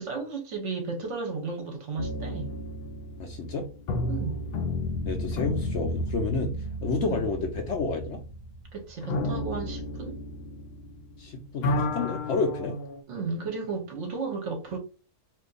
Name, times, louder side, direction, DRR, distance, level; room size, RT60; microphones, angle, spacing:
voice 1, 0.0-2.5 4.1-4.4 7.0-7.2 8.7-10.2 13.1-14.8, right 4 dB, 60° right, 1.0 m, -34 dB
sound 1, 2.0-11.2 11.5-13.0, left 1 dB, 90° left, 0.5 m, -32 dB
voice 2, 3.2-3.7 5.1-6.5 6.8-8.2 11.2-12.8, left 3 dB, 65° left, 0.8 m, -30 dB
2.6 x 2.5 x 3.8 m
omnidirectional pair, 1.6 m